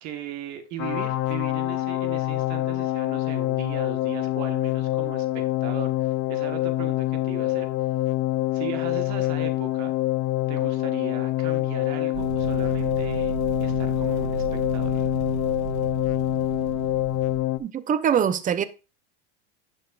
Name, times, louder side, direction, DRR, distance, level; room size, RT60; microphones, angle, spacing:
voice 1, 0.0-7.7 8.5-9.9 10.5-13.3 13.6-15.1, right 9 dB, 50° right, 1.4 m, -38 dB
sound 1, 0.8-17.6, left 16 dB, 45° left, 0.6 m, -26 dB
sound 2, 12.1-17.4, right 4 dB, 70° right, 1.3 m, -32 dB
voice 2, 17.6-18.6, right 8 dB, 25° right, 0.6 m, -23 dB
10.0 x 6.2 x 2.4 m
supercardioid pair, 120°, 35 cm